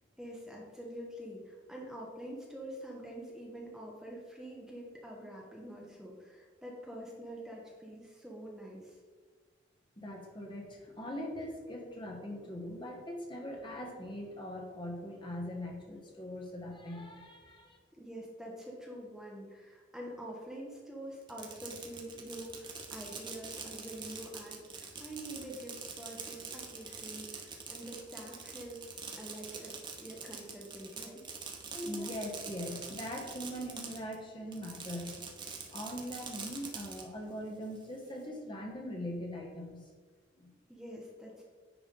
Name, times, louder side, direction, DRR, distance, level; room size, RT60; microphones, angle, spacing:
voice 1, 0.2-9.0 17.9-28.9 29.2-31.2 40.7-41.4, right 1 dB, 5° right, -3 dB, 1.0 m, -46 dB
voice 2, 10.0-17.8 31.7-35.2 35.7-39.9 40.4-40.5, equal, 25° left, 0 dB, 1.1 m, -41 dB
Fireworks, 21.2-34.2 34.5-37.0, right 5 dB, 25° right, 0.8 m, -45 dB
9.8 x 3.5 x 5.2 m, 1.5 s
head